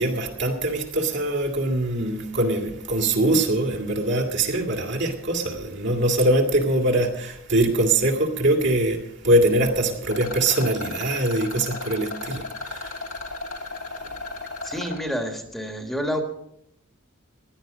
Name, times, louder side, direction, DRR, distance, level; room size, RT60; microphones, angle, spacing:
voice 1, 0.0-13.2 14.0-14.2, right 1 dB, 60° right, 2.4 m, -23 dB
Rattle, 10.0-15.0, left 3 dB, 85° left, 2.6 m, -35 dB
voice 2, 14.6-16.2, equal, ahead, 1.5 m, -29 dB
16.5 x 11.0 x 5.2 m
head